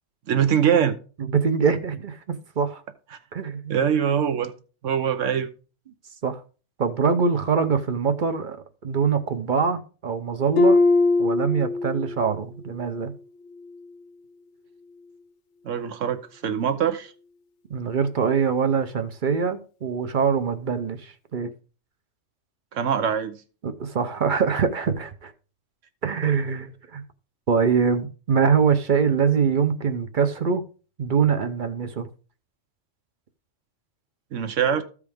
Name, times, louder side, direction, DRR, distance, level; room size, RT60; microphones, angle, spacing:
voice 1, 0.3-1.0 3.7-4.5 4.8-5.5 15.6-17.1 22.7-23.4 34.3-34.8, right 8 dB, 80° right, 1.2 m, -23 dB
voice 2, 1.3-2.8 3.3-3.8 6.2-6.4 6.8-10.8 11.2-13.1 17.7-21.5 23.6-25.3 26.0-27.0 27.5-30.6 31.0-32.1, right 6 dB, 50° right, 0.8 m, -23 dB
Harp, 10.6-12.3 12.7-13.1 13.6-13.8, left 3 dB, 70° left, 1.0 m, -21 dB
14.0 x 4.8 x 3.5 m
omnidirectional pair, 1.3 m